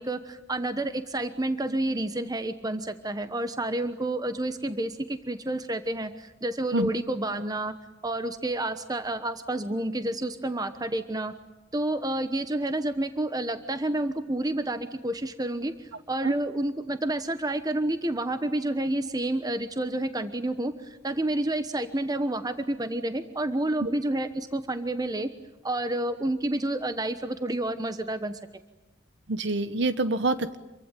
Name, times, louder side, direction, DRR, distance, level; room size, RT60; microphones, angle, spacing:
voice 1, 0.0-7.7 8.0-11.3 11.7-25.3 25.6-28.4, right 1 dB, 20° right, 9 dB, 1.1 m, -29 dB
voice 2, 29.3-30.6, right 2 dB, 70° right, 11 dB, 1.2 m, -26 dB
27.5 x 23.5 x 9.2 m, 1.0 s
head